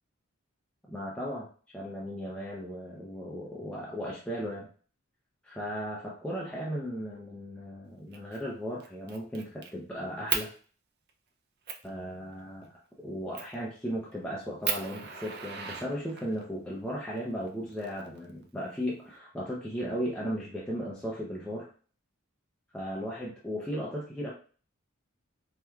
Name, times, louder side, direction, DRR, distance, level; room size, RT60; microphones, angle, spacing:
voice 1, 0.9-4.7 5.4-10.5 11.8-12.7 13.0-21.7 22.7-24.3, equal, 5° left, -5 dB, 0.5 m, -36 dB
Fire, 8.1-8.4 8.8-9.7 10.3-10.5 11.1-11.2 11.7-11.9 13.3-13.6 14.1-14.2 14.6-16.4 17.5-18.4, right 7 dB, 50° right, 0.5 m, -34 dB
4.5 x 2.2 x 2.3 m, 0.41 s
head